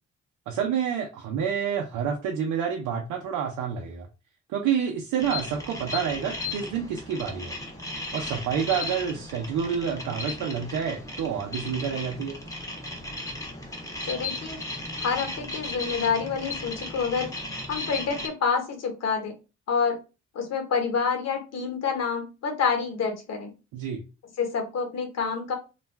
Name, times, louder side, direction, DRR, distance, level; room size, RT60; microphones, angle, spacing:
voice 1, 0.5-4.1 4.5-7.5 8.1-12.4 23.7-24.0, right 7 dB, 85° right, 1 dB, 0.6 m, -28 dB
sound 1, 5.2-18.3, left 2 dB, 10° left, 0.8 m, -36 dB
voice 2, 14.1-14.6 15.0-17.3 17.7-19.3 19.7-20.0 20.3-23.5 24.4-25.5, left 5 dB, 60° left, 3 dB, 1.1 m, -27 dB
2.4 x 2.2 x 3.2 m, 0.30 s
cardioid pair, 90°, 30 cm